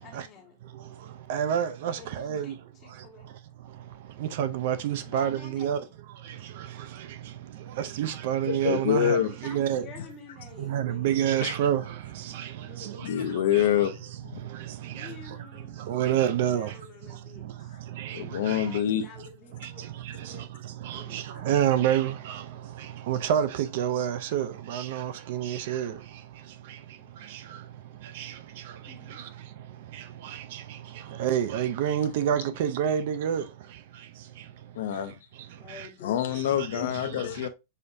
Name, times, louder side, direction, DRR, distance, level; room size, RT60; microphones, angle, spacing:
voice 1, 0.0-0.6 1.8-3.3 5.0-5.9 9.2-11.1 12.6-13.0 13.9-14.0 14.8-15.8 16.2-17.8 18.6-19.9 20.2-20.5 20.9-21.7 27.0-27.1 28.9-29.2 35.5-36.2, left 6 dB, 25° left, 1.2 m, -49 dB
voice 2, 1.3-2.5 4.4-5.8 7.8-9.2 9.4-9.9 10.7-11.8 12.3-12.5 13.5-13.6 15.0-15.1 15.9-16.7 18.0-18.2 18.5-18.6 20.9-22.4 23.1-23.5 23.7-25.9 28.2-28.3 31.2-33.4, right 10 dB, 55° right, 0.4 m, -27 dB
voice 3, 8.5-9.3 11.4-11.5 13.0-13.9 18.1-19.1 34.7-35.1 36.0-37.5, left 10 dB, 75° left, 0.5 m, -26 dB
6.3 x 2.6 x 2.5 m
supercardioid pair, 170°, 0 cm